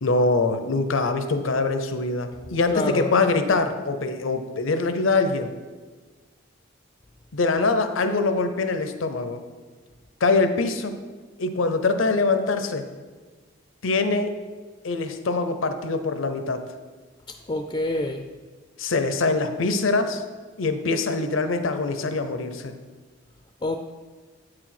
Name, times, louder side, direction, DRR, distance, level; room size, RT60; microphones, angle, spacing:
voice 1, 0.0-5.5 7.3-9.4 10.2-11.0 11.4-12.8 13.8-14.3 14.8-16.6 18.8-20.2 20.6-22.7, left 3 dB, 75° left, 8 dB, 0.7 m, -23 dB
voice 2, 2.7-3.1 17.3-18.3 23.6-23.8, left 2 dB, 25° left, 5 dB, 0.3 m, -27 dB
8.5 x 4.8 x 5.9 m, 1.4 s
head